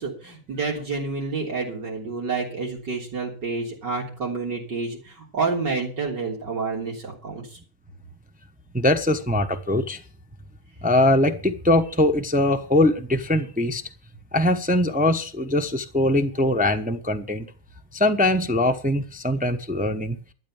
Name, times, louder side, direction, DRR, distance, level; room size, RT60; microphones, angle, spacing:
voice 1, 0.0-7.4, right 4 dB, 70° right, -2 dB, 4.1 m, -29 dB
voice 2, 8.7-10.0 10.8-13.8 14.3-17.5 17.9-20.2, left 1 dB, 10° right, 5 dB, 0.6 m, -22 dB
12.5 x 8.8 x 7.1 m, 0.39 s
omnidirectional pair, 1.9 m